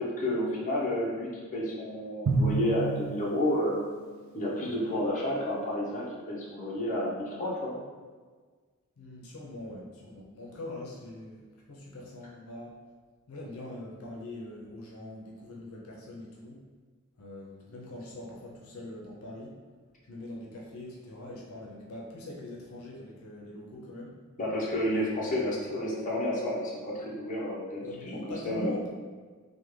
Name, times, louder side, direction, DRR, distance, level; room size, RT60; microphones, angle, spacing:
voice 1, 0.0-3.8 4.3-7.8 24.4-27.9 28.4-28.7, left 1 dB, 40° left, -5 dB, 0.7 m, -30 dB
Drum, 2.3-4.0, right 3 dB, 70° right, 0.4 m, -29 dB
voice 2, 9.0-11.4 11.7-12.7 13.3-16.6 17.2-19.6 20.1-24.2 24.9-25.4 27.8-28.9, left 1 dB, 80° left, -3 dB, 0.5 m, -42 dB
3.4 x 2.1 x 3.1 m, 1.5 s
head